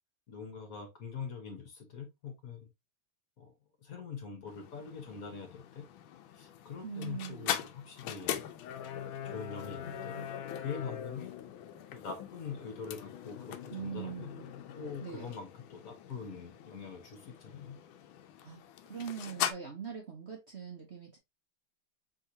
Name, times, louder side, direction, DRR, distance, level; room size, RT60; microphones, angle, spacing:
voice 1, 0.3-2.7 3.4-3.5 3.8-5.8 6.3-8.4 9.2-10.2 10.6-11.4 11.9-14.3 14.7-17.8, left 6 dB, 55° left, 1.2 m, -43 dB
sound 1, 4.5-19.5, left 10 dB, 85° left, 1.4 m, -41 dB
voice 2, 6.8-7.5 13.7-14.5 15.0-15.3 18.4-18.6 18.8-21.2, right 7 dB, 50° right, 0.8 m, -42 dB
4.8 x 3.4 x 2.7 m
omnidirectional pair, 2.1 m